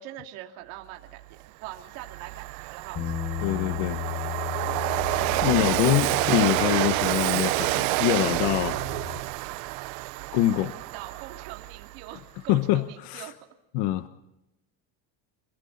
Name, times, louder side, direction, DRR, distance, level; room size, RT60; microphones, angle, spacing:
voice 1, 0.0-3.1 10.9-13.3, right 13 dB, 70° right, 3 dB, 2.7 m, -43 dB
Train, 1.2-1.3 1.7-12.1, right 21 dB, 90° right, 0.7 m, -28 dB
Bass guitar, 2.9-9.2, left 12 dB, 35° left, 5.9 m, -35 dB
voice 2, 3.4-4.0 5.4-8.8 10.3-10.7 12.5-13.3 13.7-14.2, left 14 dB, 70° left, 10 dB, 1.2 m, -25 dB
28.0 x 23.0 x 4.0 m, 0.90 s
cardioid pair, 170°, 37 cm